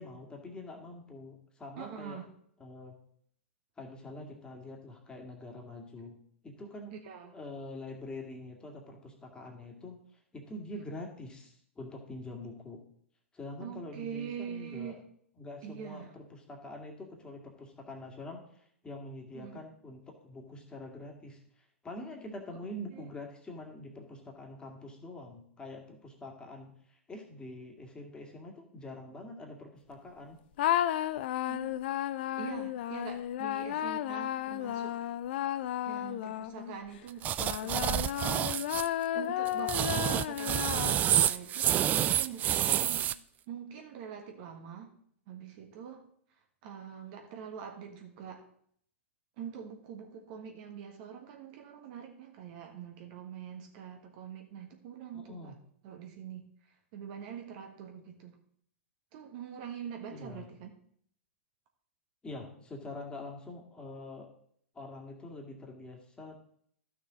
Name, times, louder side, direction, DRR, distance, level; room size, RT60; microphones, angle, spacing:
voice 1, 0.0-2.2 2.6-2.9 3.8-6.1 6.4-6.9 7.3-10.0 10.3-12.8 13.3-15.0 15.4-30.4 55.1-55.6 60.1-60.4 62.2-64.3 64.7-66.3, left 2 dB, 10° left, 1 dB, 2.2 m, -45 dB
voice 2, 1.8-2.3 6.9-7.3 10.7-10.8 13.6-15.0 15.6-16.1 19.3-19.6 22.9-23.0 31.5-32.0 32.4-35.0 35.8-37.3 37.6-43.1 43.5-44.9 45.3-46.0 46.6-48.4 49.4-55.5 55.8-58.4 59.1-60.7, right 8 dB, 45° right, 3 dB, 1.6 m, -44 dB
sound 1, 30.6-36.8 37.4-41.3, left 12 dB, 50° left, 0.5 m, -33 dB
sound 2, 37.2-38.9 39.5-43.1, right 11 dB, 25° right, 0.3 m, -28 dB
13.5 x 6.3 x 4.0 m, 0.65 s
figure-of-eight pair, 105°, 7 cm